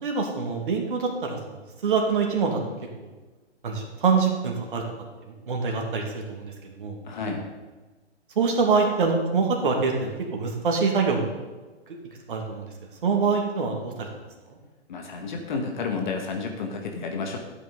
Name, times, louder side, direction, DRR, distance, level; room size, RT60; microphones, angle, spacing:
voice 1, 0.0-1.6 1.8-2.6 3.6-4.8 5.5-7.0 8.4-11.3 12.3-12.7 13.0-14.1, right 5 dB, 50° right, 1 dB, 2.3 m, -25 dB
voice 2, 7.0-7.4 14.9-17.4, left 4 dB, 40° left, 2 dB, 2.0 m, -31 dB
13.5 x 8.7 x 3.9 m, 1.2 s
figure-of-eight pair, 130°, 34 cm